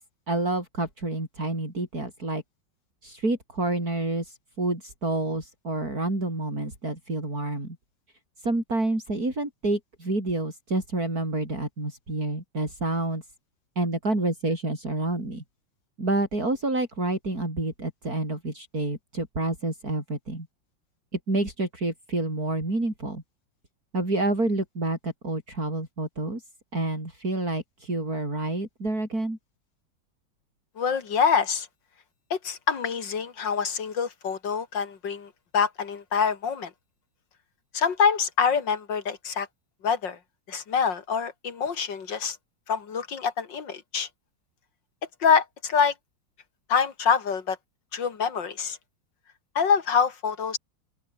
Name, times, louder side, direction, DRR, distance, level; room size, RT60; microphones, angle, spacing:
voice 1, 0.3-2.4 3.0-7.8 8.4-13.2 13.8-15.4 16.0-20.5 21.3-23.2 23.9-26.4 26.7-29.4, right 2 dB, 45° right, 7.4 m, -28 dB
voice 2, 30.8-31.7 32.3-36.7 37.7-39.5 39.8-40.2 40.5-42.4 42.7-44.1 45.2-45.9 46.7-47.6 47.9-48.8 49.6-50.6, left 6 dB, 65° left, 2.7 m, -25 dB
open air
omnidirectional pair, 2.1 m